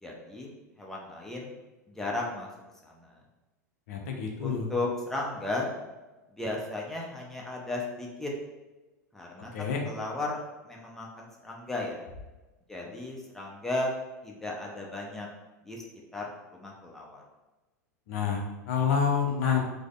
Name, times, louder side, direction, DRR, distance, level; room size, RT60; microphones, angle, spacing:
voice 1, 0.0-0.5 0.8-1.5 1.9-2.5 2.8-3.2 4.4-5.7 6.3-8.3 9.1-12.1 12.7-14.0 14.2-15.3 15.6-15.8 16.1-17.2, left 2 dB, 5° left, -2 dB, 0.6 m, -35 dB
voice 2, 3.9-4.7 9.4-9.8 18.1-19.6, left 6 dB, 55° left, 1 dB, 0.5 m, -28 dB
4.8 x 2.1 x 2.4 m, 1.1 s
figure-of-eight pair, 85°, 9 cm